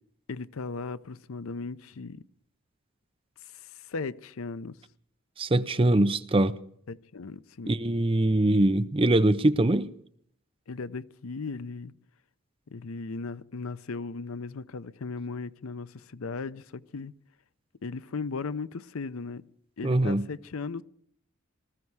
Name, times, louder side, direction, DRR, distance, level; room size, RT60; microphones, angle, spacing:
voice 1, 0.3-2.2 3.5-4.7 6.9-7.7 10.7-11.9 12.7-17.1 17.8-19.4 19.8-20.8, left 4 dB, 85° left, 0.6 m, -37 dB
voice 2, 5.4-6.6 7.7-9.9 19.8-20.3, right 1 dB, 25° right, 0.6 m, -23 dB
19.5 x 14.5 x 4.7 m
head